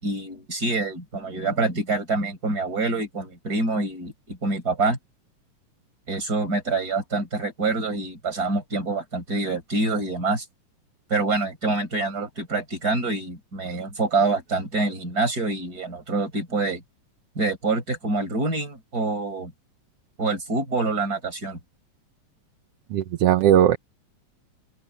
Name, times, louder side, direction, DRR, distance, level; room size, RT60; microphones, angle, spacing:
voice 1, 0.0-5.0 6.1-10.5 11.1-16.8 17.4-19.5 20.2-21.6, right 3 dB, 30° right, 5.6 m, -26 dB
voice 2, 22.9-23.8, right 11 dB, 65° right, 1.7 m, -18 dB
open air
omnidirectional pair, 3.4 m